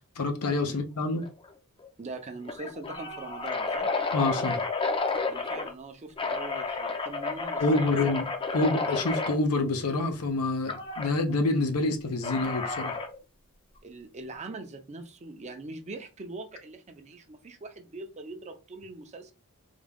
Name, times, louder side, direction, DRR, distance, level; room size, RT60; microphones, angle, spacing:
voice 1, 0.2-1.3 4.1-4.6 7.6-8.2 8.5-12.9, left 2 dB, 90° left, 0.7 m, -27 dB
sound 1, 1.2-1.5 1.8-1.9 2.4-5.7 6.2-9.4 10.7-11.1 12.2-13.2, left 3 dB, 25° left, 0.5 m, -31 dB
voice 2, 2.0-3.9 5.3-8.2 13.8-19.3, right 3 dB, 30° right, 0.5 m, -42 dB
3.6 x 2.2 x 3.4 m
head